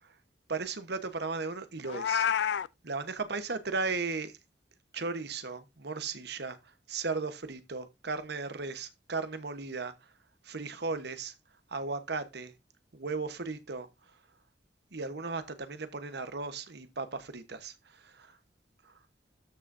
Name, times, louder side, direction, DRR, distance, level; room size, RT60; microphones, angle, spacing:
voice 1, 0.5-2.6 2.8-4.3 4.9-6.6 6.9-9.9 10.4-11.3 11.7-12.5 12.9-13.9 14.9-18.4 18.8-18.9, right 4 dB, 65° right, 1.2 m, -36 dB
Meow, 1.8-2.7, left 8 dB, 70° left, 0.4 m, -28 dB
13.0 x 6.2 x 2.7 m
head